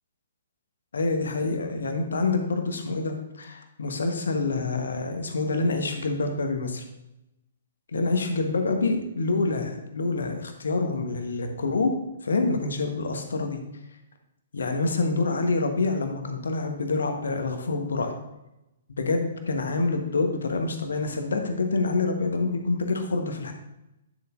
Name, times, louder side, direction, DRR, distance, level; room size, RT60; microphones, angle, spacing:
voice 1, 0.9-6.8 7.9-11.9 12.2-13.6 14.5-18.1 19.0-23.5, left 3 dB, 65° left, 5 dB, 1.1 m, -27 dB
10.0 x 6.7 x 2.5 m, 0.91 s
figure-of-eight pair, 120°, 0 cm